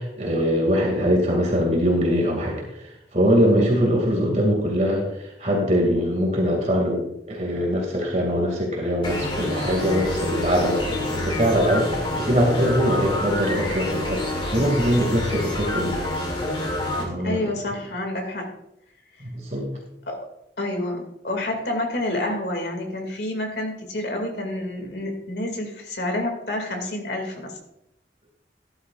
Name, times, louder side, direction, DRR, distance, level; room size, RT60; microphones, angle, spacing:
voice 1, 0.0-14.2 14.5-16.0 17.0-17.5 19.2-19.7, equal, 40° right, 0 dB, 2.3 m, -22 dB
sound 1, 9.0-17.0, left 1 dB, 30° left, 2.4 m, -27 dB
voice 2, 17.2-18.5 20.1-20.2 20.6-27.6, left 1 dB, 70° left, 2 dB, 2.3 m, -28 dB
13.0 x 11.5 x 2.5 m, 0.82 s
head